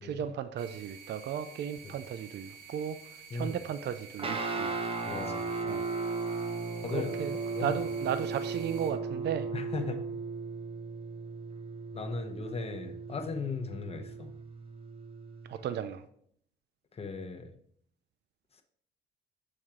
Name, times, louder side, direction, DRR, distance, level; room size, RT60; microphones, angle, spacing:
voice 1, 0.0-3.0 3.3-4.8 5.6-5.9 6.9-7.3 7.6-9.5 15.5-16.0, right 9 dB, 60° right, 11 dB, 0.4 m, -35 dB
sound 1, 0.6-8.9, right 6 dB, 85° right, 1.4 m, -50 dB
Guitar, 4.2-15.6, right 4 dB, 30° right, 0.7 m, -36 dB
voice 2, 5.0-5.4 6.8-7.1 7.5-7.8 9.5-10.0 11.9-14.3 16.9-17.5, left 4 dB, 30° left, 5 dB, 0.8 m, -37 dB
6.4 x 4.4 x 3.6 m, 0.65 s
cardioid pair, 90°, 20 cm